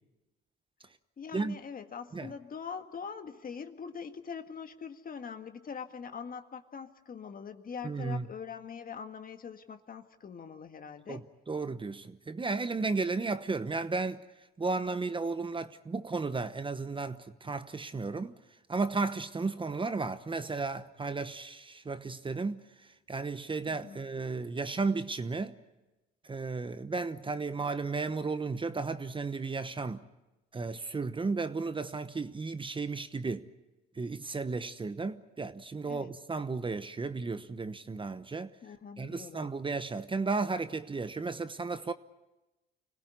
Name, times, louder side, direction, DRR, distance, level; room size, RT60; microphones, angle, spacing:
voice 1, 1.2-11.2 23.7-24.0 35.9-36.1 38.6-39.5, left 6 dB, 45° left, 1.8 m, -43 dB
voice 2, 7.8-8.3 11.1-14.2 14.6-18.3 18.7-22.6 23.1-25.5 26.3-30.0 30.5-33.5 34.0-38.5 39.0-41.9, right 4 dB, 25° right, 1.1 m, -34 dB
25.5 x 17.5 x 9.5 m
supercardioid pair, 70°, 21 cm